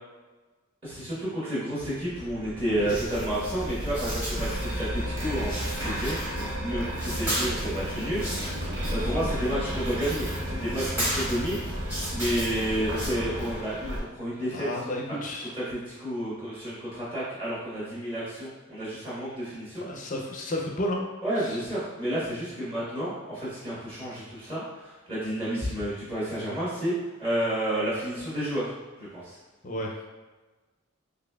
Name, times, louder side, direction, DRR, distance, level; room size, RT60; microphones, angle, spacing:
voice 1, 0.8-11.6 12.1-14.7 15.1-15.2 15.6-19.8 21.2-26.9 27.2-28.7 29.0-29.4, right 1 dB, 25° right, -10 dB, 1.3 m, -31 dB
sound 1, 2.1-13.5, equal, 75° right, 0.7 m, -35 dB
sound 2, 2.9-5.0 5.3-6.7 6.9-13.1, equal, 10° right, 1.0 m, -35 dB
sound 3, 4.3-14.0, equal, 55° right, 1.0 m, -37 dB
voice 2, 14.5-15.5 19.9-21.0 21.4-21.6 29.6-30.0, left 1 dB, 40° left, 0 dB, 0.5 m, -32 dB
4.0 x 3.2 x 2.3 m, 1.2 s
head